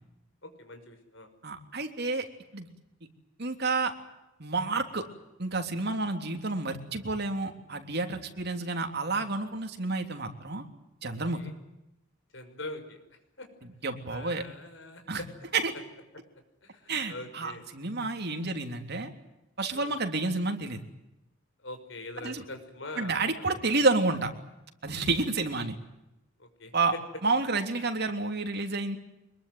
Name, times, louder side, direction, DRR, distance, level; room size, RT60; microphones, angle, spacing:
voice 1, 0.4-1.3 11.0-11.5 12.3-13.0 13.4-13.5 14.1-15.0 16.6-17.6 19.7-20.0 21.6-23.6 24.9-25.1 26.4-27.0, left 2 dB, 65° left, 7 dB, 5.7 m, -43 dB
voice 2, 1.4-2.3 2.5-2.7 3.4-3.9 4.4-5.0 5.4-10.6 11.0-11.4 13.8-14.4 15.1-15.2 15.5-15.7 16.9-19.1 19.6-20.8 22.2-22.4 23.0-24.3 24.8-25.8 26.7-26.9 27.2-29.0, right 3 dB, 55° right, 5 dB, 3.3 m, -29 dB
24.5 x 22.5 x 9.4 m, 0.92 s
head